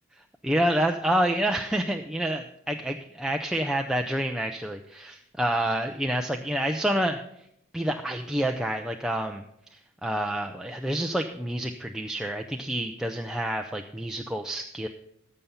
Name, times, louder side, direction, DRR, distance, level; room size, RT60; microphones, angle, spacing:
voice 1, 0.4-7.2 7.7-9.4 9.7-14.9, right 1 dB, 5° right, 3 dB, 0.5 m, -28 dB
14.5 x 5.6 x 7.0 m, 0.74 s
head